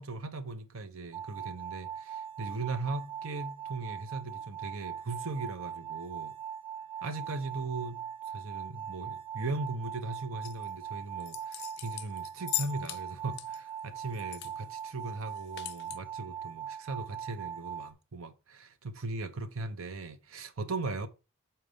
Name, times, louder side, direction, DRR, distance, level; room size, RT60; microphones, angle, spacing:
voice 1, 0.0-6.3 7.0-21.1, right 3 dB, 65° right, 0.8 m, -38 dB
sound 1, 1.1-17.9, right 8 dB, 25° right, 0.5 m, -41 dB
sound 2, 10.4-10.7 11.2-13.0 13.3-14.5 14.8-14.9 15.2-16.0, left 17 dB, 50° left, 0.3 m, -38 dB
6.5 x 4.3 x 5.2 m
head